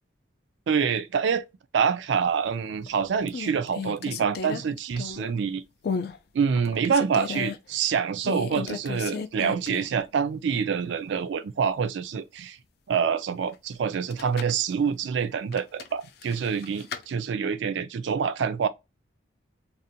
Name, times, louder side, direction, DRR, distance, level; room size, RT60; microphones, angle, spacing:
voice 1, 0.7-1.5 1.7-5.6 6.3-12.6 12.9-18.7, right 6 dB, 70° right, 0.3 m, -26 dB
sound 1, 2.5-2.9 3.3-5.4 5.8-6.2 6.5-7.6 8.2-10.0 10.3-10.4 13.9-14.6 15.5-17.0, left 5 dB, 50° left, 0.3 m, -34 dB
2.5 x 2.1 x 2.6 m
head